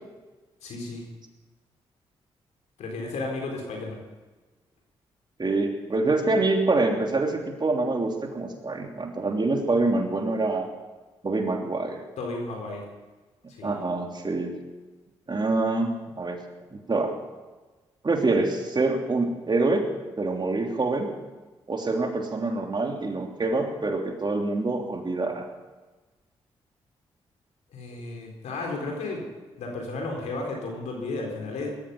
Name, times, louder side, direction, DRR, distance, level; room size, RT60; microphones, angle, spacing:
voice 1, 0.6-1.1 2.8-4.0 12.2-12.8 13.5-13.8 27.7-29.2 29.6-31.7, left 3 dB, 80° left, 0 dB, 4.2 m, -33 dB
voice 2, 5.4-10.7 11.2-12.0 13.6-14.6 15.3-16.4 16.7-17.1 18.0-19.9 20.2-21.1 21.7-25.5, right 3 dB, 40° right, 2 dB, 3.3 m, -26 dB
18.5 x 14.0 x 5.5 m, 1.2 s
supercardioid pair, 45°, 12 cm